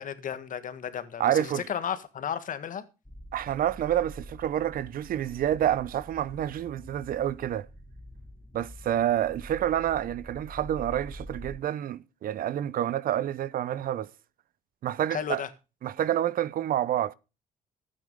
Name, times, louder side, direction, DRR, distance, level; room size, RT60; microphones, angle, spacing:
voice 1, 0.0-2.8 15.1-15.5, left 8 dB, 55° left, 1.6 m, -34 dB
voice 2, 1.2-1.6 3.3-7.7 8.5-14.1 14.8-15.4 15.8-17.1, right 11 dB, 60° right, 0.7 m, -28 dB
sound 1, 3.0-11.6, right 1 dB, 5° left, 1.2 m, -46 dB
12.0 x 9.1 x 5.3 m
supercardioid pair, 80°, 17 cm